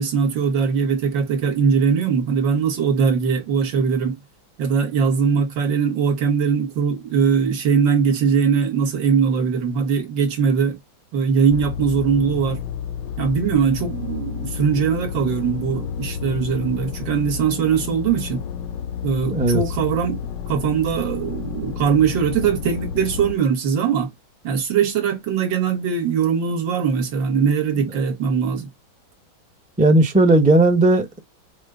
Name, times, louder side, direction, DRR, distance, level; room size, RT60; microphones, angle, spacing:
voice 1, 0.0-4.2 4.6-10.8 11.1-12.6 13.2-18.4 19.0-20.2 20.5-24.1 24.4-28.7, right 6 dB, 75° right, 1.9 m, -21 dB
sound 1, 11.5-23.4, left 8 dB, 75° left, 1.2 m, -31 dB
voice 2, 19.3-19.6 29.8-31.2, right 2 dB, 10° right, 0.5 m, -15 dB
6.2 x 2.2 x 3.6 m
omnidirectional pair, 2.0 m